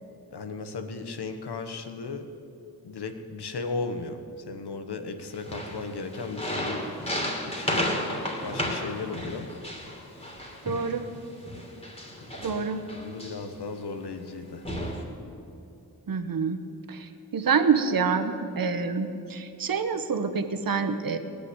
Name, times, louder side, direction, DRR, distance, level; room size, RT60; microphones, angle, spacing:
voice 1, 0.3-2.3 2.8-4.2 4.5-6.9 7.5-7.9 8.4-9.5 12.2-12.3 12.5-12.6 13.0-14.7, left 4 dB, 85° left, 8 dB, 1.2 m, -35 dB
sound 1, 5.4-11.0 11.5-13.6 14.2-14.3 14.6-15.0, left 1 dB, 15° left, 2.9 m, -33 dB
voice 2, 10.6-11.1 12.4-12.8 16.1-16.6 16.9-21.2, right 5 dB, 60° right, 9 dB, 1.1 m, -27 dB
18.0 x 6.8 x 9.5 m, 2.7 s
cardioid pair, 55°, 39 cm